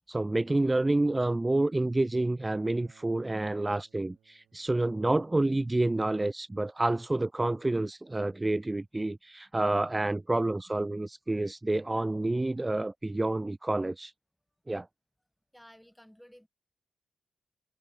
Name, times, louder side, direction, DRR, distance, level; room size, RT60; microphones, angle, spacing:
voice 1, 0.1-14.1 14.7-14.9, right 2 dB, 20° right, 0.3 m, -28 dB
Acoustic guitar, 2.5-7.7, right 10 dB, 80° right, 5.4 m, -66 dB
voice 2, 15.5-16.5, equal, 5° left, 4.7 m, -55 dB
open air
supercardioid pair, 45°, 0 cm